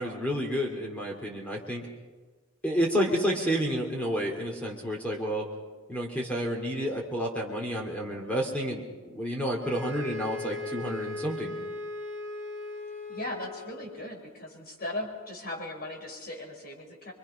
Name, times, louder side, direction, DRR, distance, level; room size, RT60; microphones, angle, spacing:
voice 1, 0.0-1.9 2.6-5.5 5.9-11.5, equal, 5° left, -1 dB, 2.6 m, -30 dB
sound 1, 9.6-14.0, left 2 dB, 65° left, 5.9 m, -38 dB
voice 2, 13.1-17.1, left 1 dB, 45° left, 1 dB, 5.4 m, -38 dB
26.5 x 23.5 x 5.7 m, 1.4 s
head